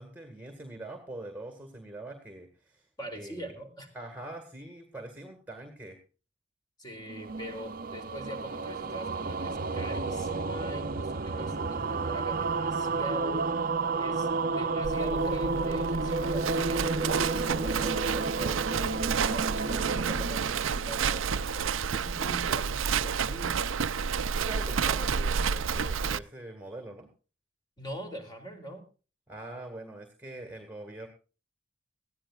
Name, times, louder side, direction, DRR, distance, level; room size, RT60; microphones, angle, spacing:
voice 1, 0.0-2.9 3.1-3.5 3.9-6.0 24.3-27.1 29.3-31.1, right 2 dB, 10° right, 6 dB, 1.9 m, -43 dB
voice 2, 3.0-3.9 6.8-13.7 14.0-23.9 27.8-28.8, equal, 20° left, 4 dB, 3.1 m, -43 dB
sound 1, 7.0-21.4, right 3 dB, 45° right, 0.8 m, -31 dB
Livestock farm animals working animals, 14.8-26.2, right 6 dB, 90° right, 0.5 m, -30 dB
19.5 x 14.5 x 2.4 m, 0.35 s
head